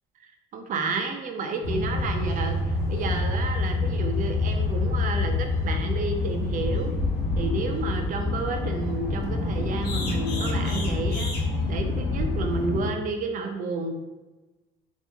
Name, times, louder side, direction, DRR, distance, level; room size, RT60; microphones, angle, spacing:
voice 1, 0.5-6.9 7.4-11.3 11.7-13.9, right 3 dB, 50° right, 5 dB, 0.5 m, -31 dB
sound 1, 1.6-12.9, left 3 dB, 75° left, 0.9 m, -27 dB
3.0 x 2.6 x 3.4 m, 1.1 s
cardioid pair, 110°, 17 cm